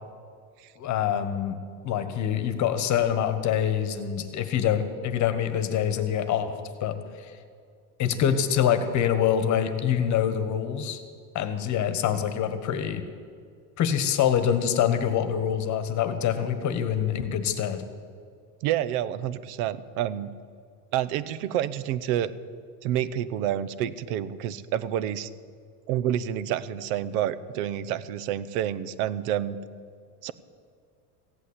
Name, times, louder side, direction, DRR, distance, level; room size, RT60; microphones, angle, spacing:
voice 1, 0.8-1.6 1.8-6.5 6.8-7.0 7.2-7.3 8.0-11.0 11.3-13.0 13.8-17.8, left 9 dB, 35° left, 10 dB, 1.3 m, -25 dB
voice 2, 18.6-20.3 20.9-22.3 22.8-25.3 25.9-29.6 30.2-30.3, right 11 dB, 65° right, 16 dB, 0.9 m, -28 dB
16.0 x 8.5 x 8.1 m, 2.1 s
supercardioid pair, 130°, 47 cm